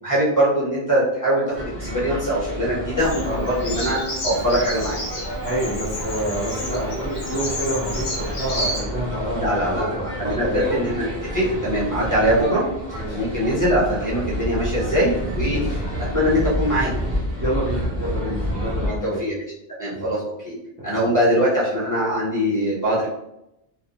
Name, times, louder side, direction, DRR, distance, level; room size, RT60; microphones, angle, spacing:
voice 1, 0.0-5.0 9.4-9.9 10.2-11.1 11.3-15.6 16.1-16.9 19.0-19.3 19.8-20.6 20.8-23.1, equal, 20° left, -7 dB, 0.7 m, -22 dB
sound 1, 1.5-19.0, equal, 45° right, 1.0 m, -29 dB
Bird vocalization bird call bird song, 3.0-8.8, left 1 dB, 60° left, 1.0 m, -31 dB
voice 2, 5.4-10.8 12.9-13.2 15.5-15.8 17.4-19.2 19.9-20.1 21.0-21.1, right 1 dB, 15° right, -7 dB, 0.4 m, -28 dB
2.5 x 2.1 x 2.7 m, 0.85 s
omnidirectional pair, 1.1 m